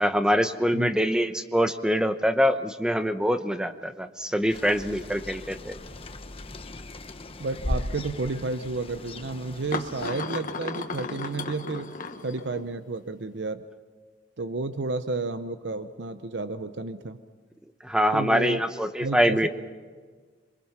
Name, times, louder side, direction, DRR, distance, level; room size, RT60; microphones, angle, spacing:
voice 1, 0.0-5.7 17.8-19.5, equal, 5° right, 9 dB, 0.9 m, -24 dB
sound 1, 4.5-10.1, left 1 dB, 35° left, 1.0 m, -37 dB
sound 2, 5.8-6.1 7.2-7.3 8.6-8.7 9.7-12.8, left 3 dB, 50° left, 1.4 m, -35 dB
voice 2, 7.4-12.0 12.2-13.6 14.4-17.2 18.1-18.6 19.0-19.5, right 3 dB, 70° right, 10 dB, 0.8 m, -31 dB
27.0 x 23.5 x 5.8 m, 1.5 s
head